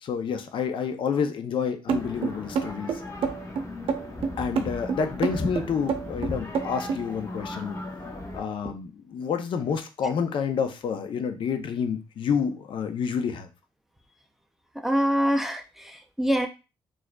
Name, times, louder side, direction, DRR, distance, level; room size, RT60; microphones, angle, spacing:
voice 1, 0.0-3.0 4.4-7.8 8.3-13.5, left 6 dB, 60° left, 7 dB, 0.5 m, -29 dB
sound 1, 1.9-8.4, left 2 dB, 30° left, 0.8 m, -36 dB
sound 2, 1.9-7.0, right 6 dB, 75° right, 0.6 m, -28 dB
voice 2, 14.8-16.5, equal, 5° right, 5 dB, 0.4 m, -25 dB
4.6 x 2.4 x 2.2 m, 0.30 s
cardioid pair, 105°, 10 cm